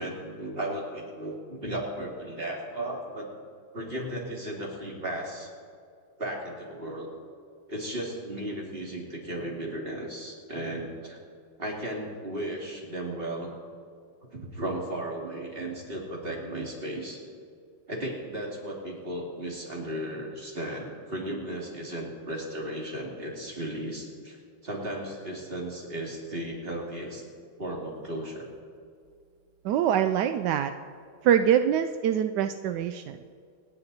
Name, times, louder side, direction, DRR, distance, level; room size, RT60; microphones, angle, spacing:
voice 1, 0.0-3.3 3.7-5.5 6.2-7.1 7.7-11.2 11.6-13.5 14.3-17.2 17.9-27.3 27.6-28.5, right 1 dB, 25° right, -1 dB, 2.7 m, -35 dB
voice 2, 29.6-30.7 31.2-33.2, right 9 dB, 75° right, 9 dB, 1.0 m, -24 dB
27.0 x 9.7 x 4.1 m, 2.2 s
omnidirectional pair, 2.3 m